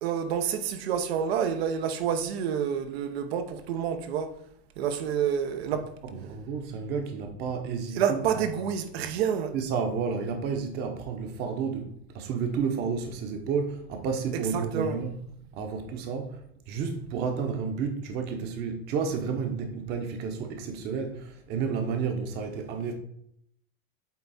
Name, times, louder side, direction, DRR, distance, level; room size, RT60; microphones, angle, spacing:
voice 1, 0.0-4.4 4.8-5.9 7.9-9.5 14.5-15.0, right 8 dB, 85° right, 1.0 m, -28 dB
voice 2, 6.0-8.4 9.5-15.1 15.5-16.4 16.7-22.9, right 5 dB, 35° right, 0.8 m, -31 dB
8.4 x 3.5 x 4.2 m
supercardioid pair, 170°, 30 cm